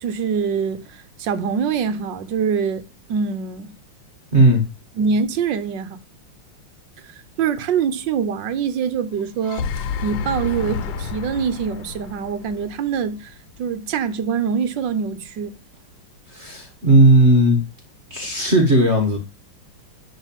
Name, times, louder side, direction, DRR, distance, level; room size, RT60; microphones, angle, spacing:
voice 1, 0.0-2.8 3.1-3.7 5.0-6.0 7.4-9.7 10.0-13.3 13.6-15.5, right 6 dB, 65° right, 1.6 m, -24 dB
voice 2, 4.3-4.6 16.3-17.6 18.1-19.2, right 1 dB, 35° right, 1.8 m, -15 dB
sound 1, 9.2-13.4, left 6 dB, 80° left, 1.6 m, -30 dB
11.5 x 4.0 x 7.4 m
omnidirectional pair, 2.2 m